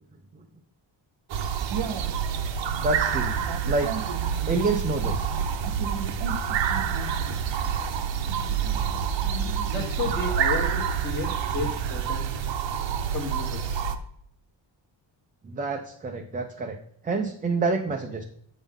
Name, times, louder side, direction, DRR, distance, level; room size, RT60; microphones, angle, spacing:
sound 1, 1.3-14.0, right 7 dB, 70° right, 0.8 m, -27 dB
voice 1, 2.8-3.3 3.6-3.9 4.5-5.3 15.4-16.8 17.0-18.2, right 3 dB, 20° right, 3 dB, 0.4 m, -27 dB
voice 2, 9.7-12.2 13.1-13.8, left 3 dB, 20° left, -3 dB, 1.1 m, -32 dB
8.2 x 5.5 x 3.5 m, 0.66 s
wide cardioid pair, 175°, 46 cm